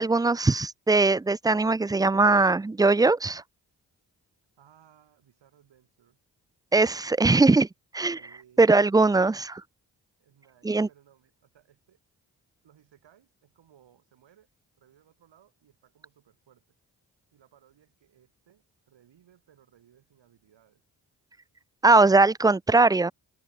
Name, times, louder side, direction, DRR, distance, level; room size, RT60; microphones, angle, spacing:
voice 1, 0.0-3.4 6.7-7.7 7.9-8.2 8.6-9.6 10.6-10.9 21.8-23.1, right 3 dB, 10° right, 0.4 m, -20 dB
voice 2, 4.6-6.2 8.1-8.8 10.2-12.0 12.6-14.5 14.8-16.6 17.3-20.8, right 10 dB, 80° right, 7.4 m, -61 dB
supercardioid pair, 45°, 43 cm